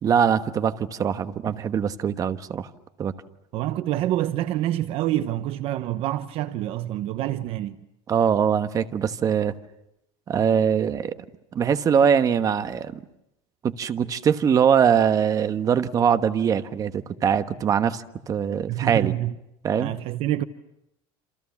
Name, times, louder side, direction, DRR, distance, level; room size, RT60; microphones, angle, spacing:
voice 1, 0.0-2.7 3.0-3.1 8.1-9.5 10.3-11.1 11.5-13.0 13.6-19.1 19.6-19.9, right 7 dB, 30° right, 1.3 m, -22 dB
voice 2, 3.5-7.8 18.7-19.3 19.8-20.4, right 14 dB, 50° right, 1.0 m, -27 dB
28.0 x 28.0 x 7.2 m
cardioid pair, 145°, 12 cm